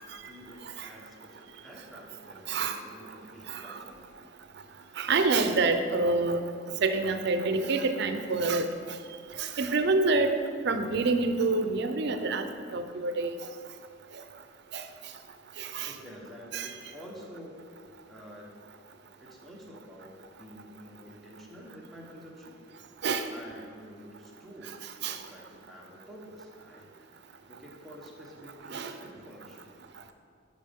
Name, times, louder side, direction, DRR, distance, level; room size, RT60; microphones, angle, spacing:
voice 1, 0.2-4.0 15.9-17.7 18.1-18.6 19.2-22.9 23.3-27.1 27.5-29.7, equal, ahead, -3 dB, 1.1 m, -49 dB
voice 2, 5.0-6.4 6.8-8.7 9.4-10.3 10.6-12.5 12.7-13.3 14.7-14.8 15.6-15.9 16.5-16.7 23.0-23.3 25.0-25.2 28.7-28.9, right 3 dB, 60° right, 8 dB, 0.5 m, -27 dB
11.0 x 5.3 x 3.6 m, 2.2 s
head